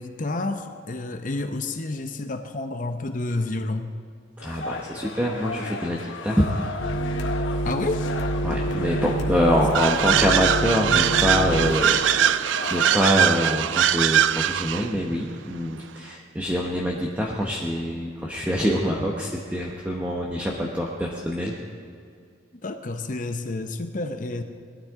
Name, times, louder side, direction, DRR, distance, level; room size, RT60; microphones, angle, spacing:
voice 1, 0.0-3.9 7.6-8.1 22.6-24.4, left 2 dB, 40° left, 7 dB, 0.7 m, -29 dB
sound 1, 4.4-13.1, left 4 dB, 85° left, 1.0 m, -34 dB
voice 2, 4.4-6.0 6.2-6.5 8.4-21.5, equal, 10° right, -2 dB, 1.0 m, -25 dB
sound 2, 6.8-11.8, right 1 dB, 65° left, 1.9 m, -27 dB
sound 3, 9.7-14.9, right 10 dB, 75° right, 0.3 m, -22 dB
20.5 x 13.0 x 3.7 m, 2.3 s
head